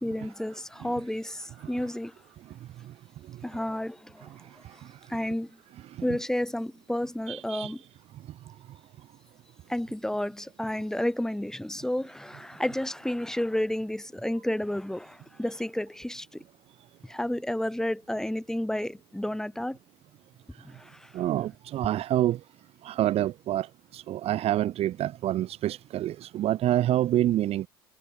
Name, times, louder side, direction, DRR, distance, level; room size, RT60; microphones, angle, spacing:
voice 1, 0.0-2.1 3.4-4.3 5.1-5.5 6.0-7.8 9.7-16.4 17.0-19.8 20.6-21.1, left 1 dB, 5° left, 6.2 m, -31 dB
voice 2, 4.2-5.2 5.9-6.0 7.3-7.7 8.5-8.6 21.1-22.4 22.8-27.7, right 13 dB, 50° right, 5.5 m, -28 dB
hypercardioid pair, 75°, 14 cm